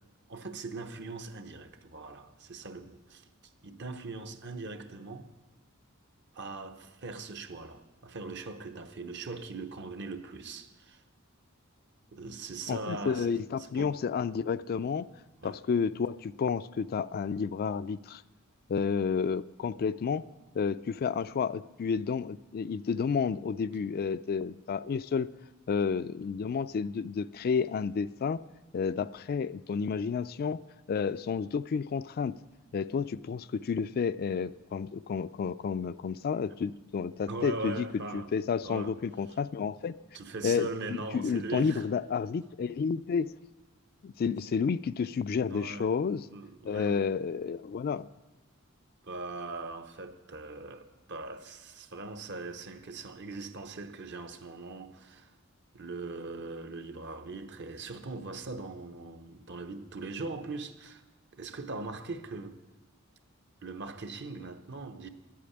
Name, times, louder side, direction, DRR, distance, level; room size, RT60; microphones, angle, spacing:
voice 1, 0.3-3.3 3.6-5.3 6.3-11.0 12.1-13.4 13.7-14.0 15.4-15.6 37.3-38.3 38.6-38.9 40.1-41.8 45.4-45.9 46.3-47.1 49.0-55.3 55.7-61.0 61.4-62.6 63.6-65.1, right 3 dB, 55° right, 0.9 m, -40 dB
voice 2, 12.7-15.1 15.4-18.2 18.7-20.2 20.5-25.3 25.7-28.4 28.7-30.6 30.9-32.4 32.7-37.9 38.1-39.9 40.4-43.3 44.0-46.3 46.6-48.1, left 6 dB, 45° left, 0.3 m, -31 dB
11.0 x 8.5 x 9.8 m
head